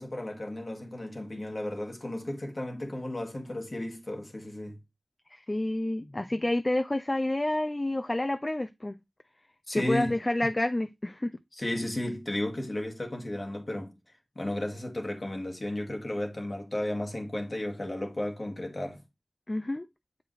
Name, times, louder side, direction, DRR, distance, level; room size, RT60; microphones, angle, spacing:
voice 1, 0.0-4.8 9.7-10.2 11.6-13.9 14.3-19.0, left 1 dB, 50° left, 1.8 m, -34 dB
voice 2, 5.3-9.0 9.7-11.4 19.5-19.9, left 1 dB, 35° left, 0.5 m, -29 dB
7.8 x 5.0 x 3.2 m
wide cardioid pair, 45°, 0 cm